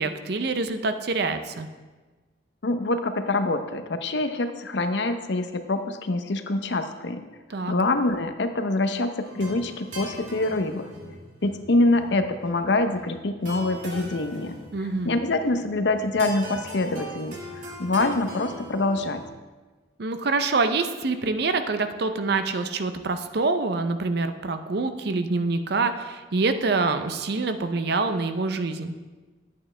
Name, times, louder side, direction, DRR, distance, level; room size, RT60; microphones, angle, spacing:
voice 1, 0.0-1.7 7.5-7.7 14.7-15.1 20.0-29.0, right 3 dB, 60° right, 9 dB, 0.6 m, -26 dB
voice 2, 2.6-7.2 7.7-10.9 11.4-14.6 15.0-19.2, left 2 dB, 70° left, 8 dB, 0.7 m, -25 dB
sound 1, 9.2-19.3, equal, 90° right, 2.3 m, -40 dB
11.0 x 8.5 x 3.3 m, 1.3 s
head